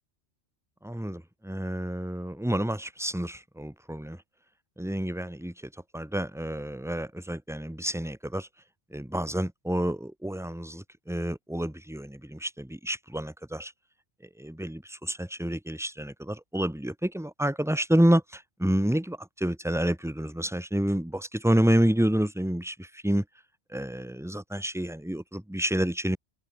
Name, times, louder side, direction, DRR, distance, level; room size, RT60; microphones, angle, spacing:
voice 1, 0.8-4.2 4.8-5.5 5.9-8.5 8.9-13.7 14.4-23.2 23.7-26.2, right 1 dB, 5° right, 1.0 m, -29 dB
open air
omnidirectional pair, 1.1 m